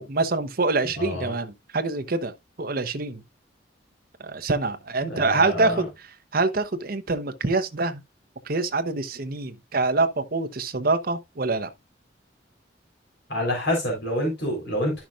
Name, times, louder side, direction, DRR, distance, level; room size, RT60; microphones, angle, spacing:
voice 1, 0.0-3.2 4.2-5.9 6.3-8.0 8.5-11.7, right 3 dB, 50° right, 0.9 m, -25 dB
voice 2, 1.0-1.3 5.0-5.9 13.3-15.0, left 1 dB, 65° left, 3.8 m, -27 dB
11.5 x 5.9 x 2.4 m
head